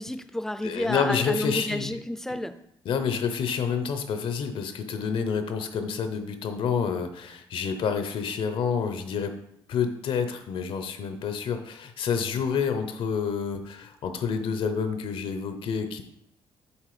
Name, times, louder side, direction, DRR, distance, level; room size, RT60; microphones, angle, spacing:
voice 1, 0.0-2.5, left 1 dB, 5° left, 10 dB, 0.4 m, -30 dB
voice 2, 0.6-2.0 2.8-9.3 9.7-16.0, left 6 dB, 70° left, 8 dB, 0.8 m, -28 dB
7.2 x 4.3 x 5.0 m, 0.75 s
cardioid pair, 130°, 9 cm